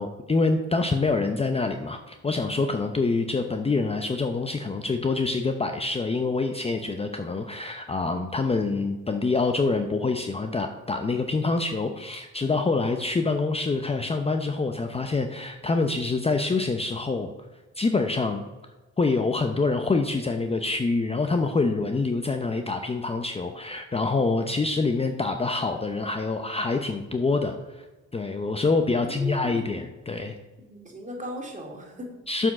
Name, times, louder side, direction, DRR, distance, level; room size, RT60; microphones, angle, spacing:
voice 1, 0.0-17.3 17.8-18.5 19.0-27.9 28.1-30.4 32.3-32.5, left 3 dB, 20° left, 6 dB, 0.7 m, -26 dB
voice 2, 28.9-29.7 30.6-32.1, equal, 25° right, 1 dB, 2.5 m, -38 dB
7.0 x 6.3 x 6.3 m, 1.2 s
cardioid pair, 90°, 30 cm